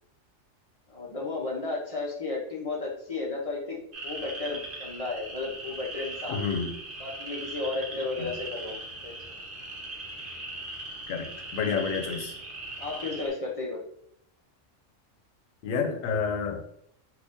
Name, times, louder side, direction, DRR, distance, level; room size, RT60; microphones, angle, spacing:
voice 1, 0.9-6.5 7.0-9.1 12.8-13.8, left 3 dB, 35° left, -3 dB, 0.6 m, -33 dB
sound 1, 3.9-13.3, right 2 dB, 50° right, 1.0 m, -39 dB
voice 2, 6.3-6.7 8.2-8.3 11.1-12.3 15.6-16.6, left 6 dB, 90° left, 5 dB, 1.0 m, -29 dB
2.7 x 2.7 x 3.5 m, 0.69 s
omnidirectional pair, 1.3 m